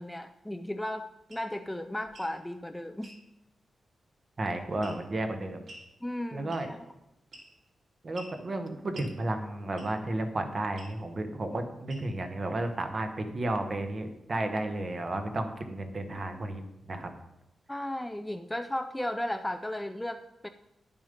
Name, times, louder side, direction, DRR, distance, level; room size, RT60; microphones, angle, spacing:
voice 1, 0.0-3.1 6.0-6.8 17.7-20.5, left 1 dB, 5° left, 6 dB, 0.3 m, -35 dB
sound 1, 1.3-1.5 2.1-2.3 3.0-3.2 4.8-5.2 5.7-5.9 6.5-6.8 7.3-7.7 8.1-8.4 8.9-9.1 9.8-10.1 10.8-11.0 11.9-12.2, right 1 dB, 50° right, 2.8 m, -48 dB
voice 2, 4.4-5.6 6.3-6.7 8.0-17.1, right 2 dB, 30° right, 6 dB, 1.0 m, -33 dB
10.5 x 7.1 x 5.2 m, 0.87 s
wide cardioid pair, 175°, 0 cm